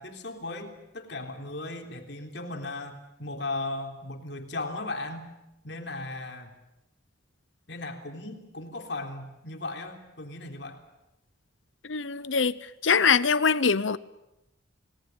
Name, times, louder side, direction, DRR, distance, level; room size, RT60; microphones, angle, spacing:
voice 1, 0.0-5.3 5.6-6.5 7.7-10.8, left 2 dB, 60° left, 3.6 m, -37 dB
voice 2, 11.9-12.5 12.8-14.0, left 5 dB, 80° left, 0.9 m, -23 dB
29.5 x 18.5 x 9.1 m
head